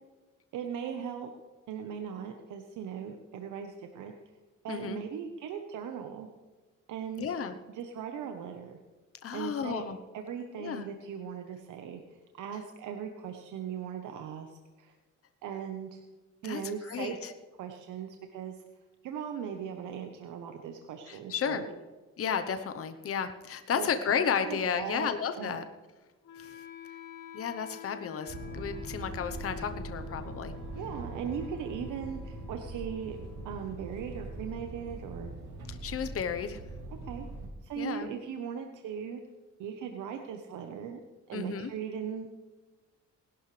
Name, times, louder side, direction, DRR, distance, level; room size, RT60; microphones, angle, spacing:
voice 1, 0.5-1.3 1.7-4.1 4.6-6.3 6.9-7.3 7.7-8.8 9.3-9.9 10.1-14.9 15.4-16.0 16.4-18.5 19.0-21.7 23.7-23.9 24.4-25.6 30.7-33.2 33.4-35.3 37.0-37.3 37.6-39.2 39.6-41.0 41.3-42.3, right 7 dB, 80° right, 4 dB, 1.1 m, -39 dB
voice 2, 4.7-5.0 7.2-7.5 9.2-10.0 10.6-10.8 16.4-17.3 21.1-21.6 22.2-25.6 26.4-26.6 27.3-30.6 35.7-36.6 37.8-38.1 41.3-41.7, left 7 dB, 50° left, 8 dB, 1.0 m, -33 dB
Wind instrument woodwind instrument, 26.2-36.2, left 9 dB, 80° left, 2.5 m, -49 dB
sound 1, 28.3-37.5, right 2 dB, 60° right, 3.6 m, -42 dB
19.5 x 12.0 x 3.3 m, 1.3 s
cardioid pair, 90°, 30 cm